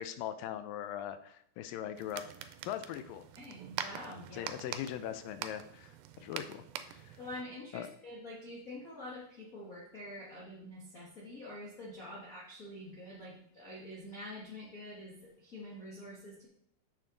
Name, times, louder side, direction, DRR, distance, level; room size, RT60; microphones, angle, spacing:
voice 1, 0.0-2.2 2.7-3.3 4.3-5.9 6.2-7.2 7.7-7.9, left 10 dB, 80° left, 11 dB, 2.3 m, -40 dB
sound 1, 2.0-7.4, right 10 dB, 90° right, 2.4 m, -44 dB
voice 2, 3.4-4.5 7.2-16.5, left 1 dB, 45° left, -5 dB, 1.2 m, -46 dB
8.7 x 6.6 x 3.8 m, 0.69 s
omnidirectional pair, 4.0 m